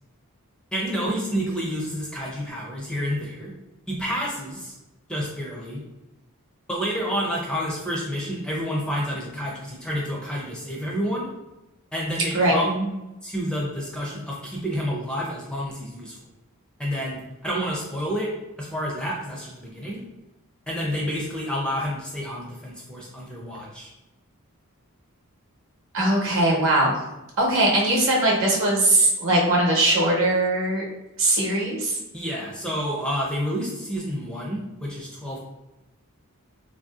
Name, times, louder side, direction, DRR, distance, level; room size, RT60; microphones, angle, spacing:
voice 1, 0.7-3.5 3.9-4.7 5.1-5.8 6.7-11.3 11.9-12.9 13.2-16.2 16.8-18.3 18.6-20.0 20.7-23.9 32.1-35.4, equal, 5° left, -4 dB, 0.4 m, -29 dB
voice 2, 25.9-27.0 27.4-30.8 31.2-32.0, right 1 dB, 60° right, -2 dB, 0.8 m, -20 dB
3.1 x 2.6 x 2.3 m, 0.98 s
head